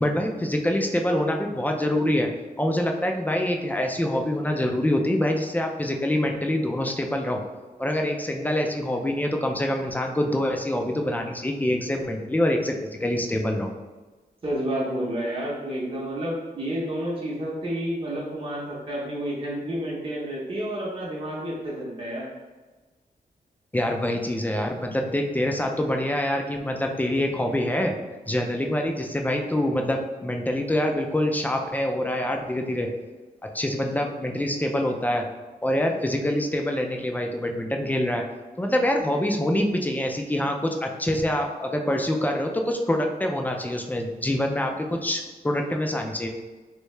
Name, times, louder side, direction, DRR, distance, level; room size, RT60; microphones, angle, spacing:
voice 1, 0.0-2.3 2.6-7.4 7.8-13.7 23.7-28.0 28.3-32.9 33.4-35.2 35.6-38.2 38.6-46.3, left 1 dB, 10° left, 2 dB, 0.3 m, -25 dB
voice 2, 14.4-22.3, right 1 dB, 35° right, -5 dB, 0.7 m, -30 dB
3.2 x 2.7 x 3.2 m, 1.3 s
wide cardioid pair, 130°, 16 cm